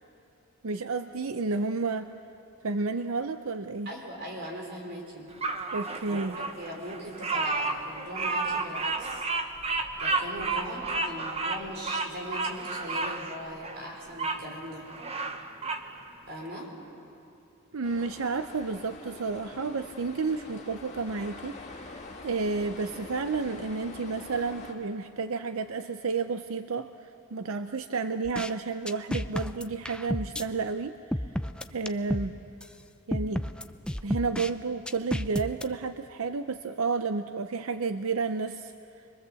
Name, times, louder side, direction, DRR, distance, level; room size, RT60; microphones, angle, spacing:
voice 1, 0.6-2.1 2.6-3.9 5.7-6.4 17.7-21.6 21.8-26.9 27.3-30.9 31.7-32.4 33.1-33.5 34.0-38.7, right 4 dB, 70° right, 10 dB, 0.6 m, -31 dB
voice 2, 3.9-5.3 6.1-9.3 10.0-14.9 16.3-16.7, equal, 45° right, 0 dB, 4.2 m, -40 dB
Bird vocalization bird call bird song, 5.4-14.4 14.8-15.9, right 3 dB, 30° right, 1.1 m, -31 dB
sound 1, 17.8-24.7, left 2 dB, 30° left, 2.4 m, -44 dB
sound 2, 28.2-28.5 28.9-30.4 31.1-32.3 32.6-32.7 33.1-34.5 34.9-35.6, equal, 5° left, 0.5 m, -31 dB
25.5 x 22.5 x 7.7 m, 2.7 s
head